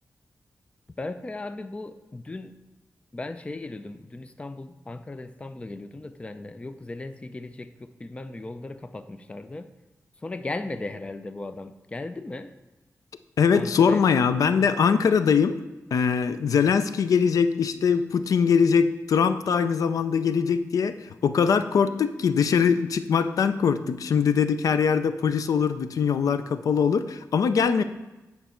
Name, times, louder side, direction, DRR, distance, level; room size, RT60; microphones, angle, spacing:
voice 1, 1.0-2.5 3.1-9.7 10.2-12.5 13.5-14.1, left 2 dB, 20° left, 11 dB, 0.4 m, -37 dB
voice 2, 13.4-15.6 15.9-27.8, left 6 dB, 85° left, 11 dB, 0.4 m, -22 dB
9.3 x 5.4 x 4.3 m, 1.1 s
wide cardioid pair, 105°, 6 cm